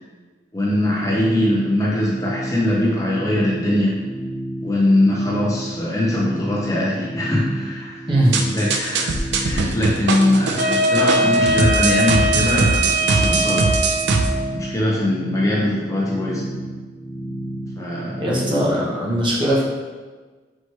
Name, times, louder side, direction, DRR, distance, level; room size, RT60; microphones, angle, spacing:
voice 1, 0.5-4.0 4.6-8.0 8.5-13.7 14.5-16.4 17.8-18.2, left 1 dB, 20° left, -5 dB, 0.5 m, -21 dB
sound 1, 0.7-18.9, right 1 dB, 40° left, 1.1 m, -32 dB
voice 2, 8.1-8.4 18.2-19.6, right 1 dB, 25° right, -5 dB, 0.7 m, -19 dB
sound 2, 8.3-14.3, right 3 dB, 65° right, 0.4 m, -21 dB
Wind instrument woodwind instrument, 10.6-14.4, right 1 dB, 50° right, 1.1 m, -21 dB
4.4 x 3.0 x 3.1 m, 1.4 s
head